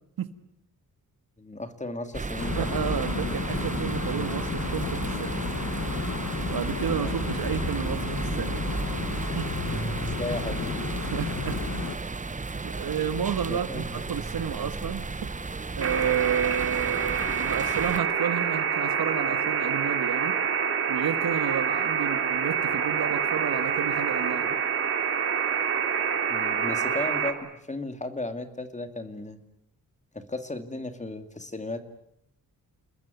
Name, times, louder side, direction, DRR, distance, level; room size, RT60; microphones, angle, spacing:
voice 1, 1.4-2.7 7.0-7.3 10.0-10.8 13.5-14.0 26.3-29.4 30.1-31.8, left 2 dB, 20° left, 9 dB, 2.5 m, -35 dB
sound 1, 2.1-18.0, right 3 dB, 20° right, 1.0 m, -33 dB
sound 2, 2.4-12.0, left 6 dB, 50° left, 1.4 m, -33 dB
voice 2, 2.6-5.5 6.3-8.6 9.4-9.5 11.0-11.6 12.5-15.3 15.8-20.4 20.9-24.6, right 8 dB, 75° right, 11 dB, 1.8 m, -31 dB
sound 3, 15.8-27.3, right 7 dB, 35° right, 3.5 m, -27 dB
29.5 x 20.5 x 9.4 m, 0.76 s
wide cardioid pair, 135°, 37 cm